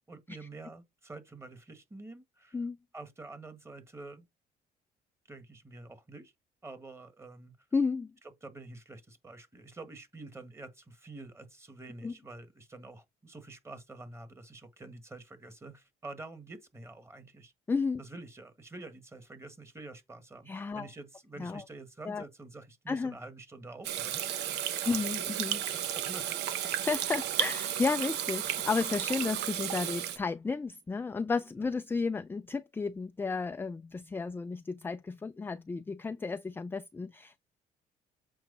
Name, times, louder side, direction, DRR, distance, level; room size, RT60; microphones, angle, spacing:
voice 1, 0.1-2.6 2.9-4.3 5.3-6.3 6.6-7.6 8.4-17.5 18.0-24.2 24.8-25.0 25.7-26.4, right 2 dB, 15° right, 1.7 m, -47 dB
voice 2, 7.7-8.1 12.0-12.1 17.7-18.0 20.5-20.9 21.4-21.6 22.0-22.2 22.9-23.1 24.9-25.6 26.8-37.4, left 4 dB, 15° left, 0.3 m, -33 dB
Water tap faucet / Sink (filling or washing), 23.8-30.2, right 11 dB, 90° right, 0.9 m, -33 dB
7.7 x 4.6 x 4.0 m
cardioid pair, 110°, 17 cm